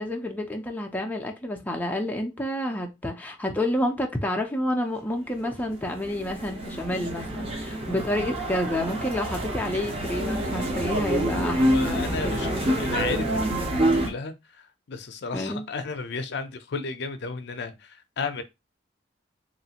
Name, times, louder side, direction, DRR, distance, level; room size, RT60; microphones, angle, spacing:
voice 1, 0.0-12.7 15.3-15.7, left 1 dB, 10° left, 0.4 m, -29 dB
sound 1, 5.4-14.1, right 1 dB, 30° right, 0.7 m, -27 dB
voice 2, 11.3-13.4 13.7-18.4, left 4 dB, 65° left, 0.5 m, -33 dB
3.0 x 2.4 x 2.8 m
head